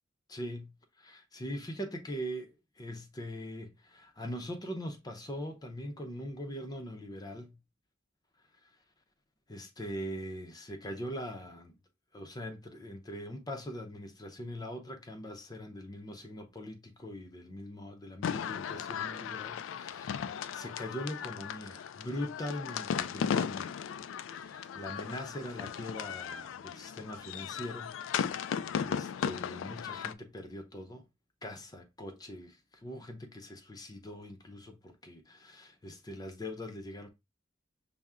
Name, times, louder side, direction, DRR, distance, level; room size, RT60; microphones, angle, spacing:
voice 1, 0.3-7.6 8.6-8.7 9.5-11.7 12.1-23.9 24.4-27.9 28.4-31.0 31.4-37.1, equal, 20° left, 0.5 m, -42 dB
sound 1, 18.2-30.1, left 7 dB, 75° left, 0.3 m, -36 dB
5.5 x 2.0 x 3.5 m
head